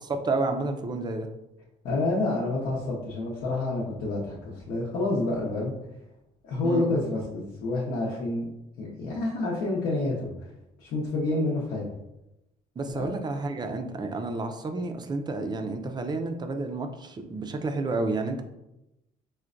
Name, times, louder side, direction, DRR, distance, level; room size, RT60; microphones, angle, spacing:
voice 1, 0.0-1.3 6.6-6.9 12.8-18.4, right 3 dB, 25° right, 6 dB, 0.4 m, -30 dB
voice 2, 1.8-5.7 6.4-8.5 8.8-10.5 10.8-11.9 12.9-13.1, left 2 dB, 70° left, -5 dB, 0.8 m, -28 dB
4.4 x 2.1 x 2.5 m, 0.90 s
cardioid pair, 110°, 17 cm